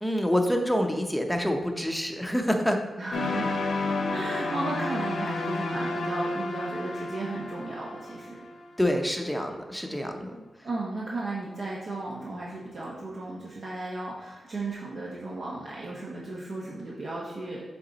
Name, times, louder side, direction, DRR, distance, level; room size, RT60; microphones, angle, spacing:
voice 1, 0.0-2.8 3.4-3.5 8.8-10.4, equal, 5° left, 4 dB, 0.7 m, -27 dB
voice 2, 3.0-3.5 4.1-8.4 10.6-17.6, right 2 dB, 55° right, -6 dB, 1.1 m, -35 dB
sound 1, 3.1-9.0, left 2 dB, 80° left, 0.9 m, -31 dB
7.3 x 3.8 x 4.0 m, 1.2 s
cardioid pair, 90°, 0 cm